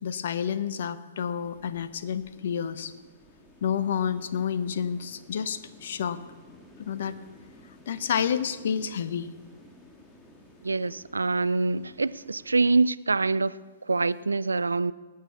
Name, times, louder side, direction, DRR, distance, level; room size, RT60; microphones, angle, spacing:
voice 1, 0.0-2.9 3.6-6.2 6.8-7.2 7.9-9.3, left 8 dB, 60° left, 0.6 m, -29 dB
sound 1, 1.2-12.7, left 1 dB, 5° left, 1.6 m, -54 dB
voice 2, 10.6-13.5 13.9-14.9, right 3 dB, 80° right, 0.3 m, -25 dB
18.5 x 6.4 x 7.1 m
figure-of-eight pair, 115°, 0 cm